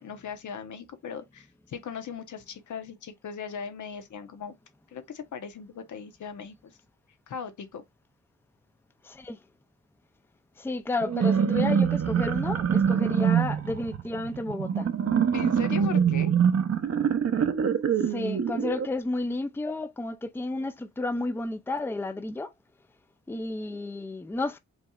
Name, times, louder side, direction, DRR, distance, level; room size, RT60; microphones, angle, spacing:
voice 1, 0.0-4.5 4.9-6.7 7.3-7.8 15.3-16.3 23.3-23.8, left 6 dB, 80° left, 1.0 m, -39 dB
voice 2, 9.0-9.4 10.6-14.9 18.0-22.5 23.3-24.6, left 2 dB, 10° left, 0.5 m, -32 dB
sound 1, 11.0-18.9, right 7 dB, 55° right, 0.8 m, -25 dB
5.1 x 3.1 x 2.4 m
cardioid pair, 90°, 30 cm